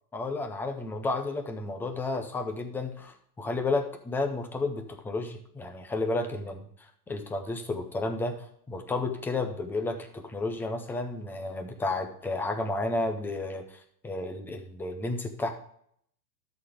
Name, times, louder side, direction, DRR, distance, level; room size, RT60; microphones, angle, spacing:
voice 1, 0.1-6.7 7.1-8.3 8.7-13.6 14.0-15.5, left 2 dB, 5° left, 5 dB, 0.4 m, -32 dB
12.5 x 4.2 x 4.9 m, 0.67 s
supercardioid pair, 140°, 46 cm